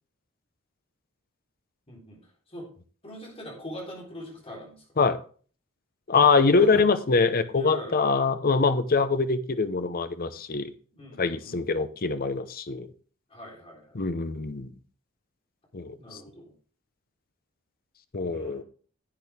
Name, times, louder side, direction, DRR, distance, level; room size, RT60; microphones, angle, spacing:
voice 1, 1.9-2.7 3.0-5.0 6.3-6.9 7.5-8.0 10.9-11.6 13.3-14.0 16.0-16.5 18.2-18.6, equal, 30° left, -2 dB, 3.9 m, -42 dB
voice 2, 6.1-10.7 11.2-12.9 13.9-14.7 15.7-16.0 18.1-18.6, left 4 dB, 45° left, 11 dB, 0.7 m, -24 dB
10.5 x 8.5 x 3.5 m, 0.42 s
head